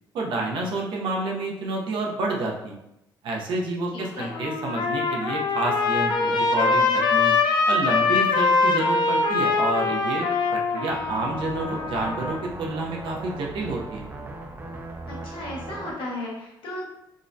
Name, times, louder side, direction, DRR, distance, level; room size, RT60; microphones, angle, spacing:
voice 1, 0.1-2.7 3.2-7.3 7.7-14.1, right 2 dB, 80° right, -1 dB, 0.6 m, -29 dB
voice 2, 3.9-4.3 15.1-16.8, left 1 dB, 85° left, -4 dB, 1.0 m, -35 dB
Trumpet, 4.0-12.5, left 4 dB, 65° left, 0.4 m, -23 dB
sound 1, 10.9-15.9, right 2 dB, 25° right, 0.3 m, -38 dB
3.6 x 2.1 x 2.5 m, 0.87 s
cardioid pair, 125°, 8 cm